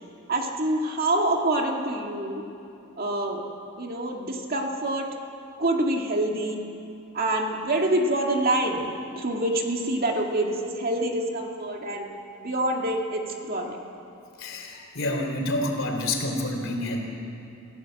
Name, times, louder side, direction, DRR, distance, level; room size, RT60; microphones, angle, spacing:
voice 1, 0.3-2.4 3.0-3.4 3.8-5.1 5.6-6.6 7.1-12.1 12.4-13.8, right 1 dB, 40° right, 1 dB, 2.2 m, -26 dB
voice 2, 14.4-17.0, left 1 dB, 60° left, 2 dB, 3.6 m, -28 dB
28.0 x 16.0 x 7.9 m, 2.7 s
head